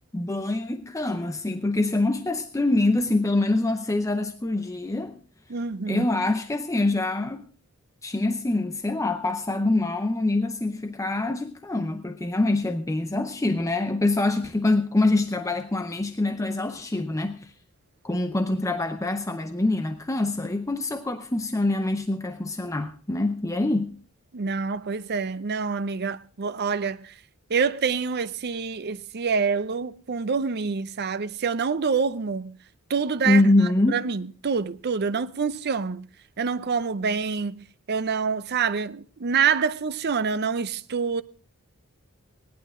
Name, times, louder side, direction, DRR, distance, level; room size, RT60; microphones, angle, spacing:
voice 1, 0.1-5.2 5.9-7.4 8.0-17.5 18.0-23.9 33.2-34.0, left 2 dB, 15° left, 0.6 m, -25 dB
voice 2, 5.5-6.1 24.3-27.1 27.5-32.6 32.9-33.4 33.9-36.1 36.4-41.2, right 5 dB, 50° right, 0.6 m, -26 dB
17.5 x 11.0 x 3.7 m
head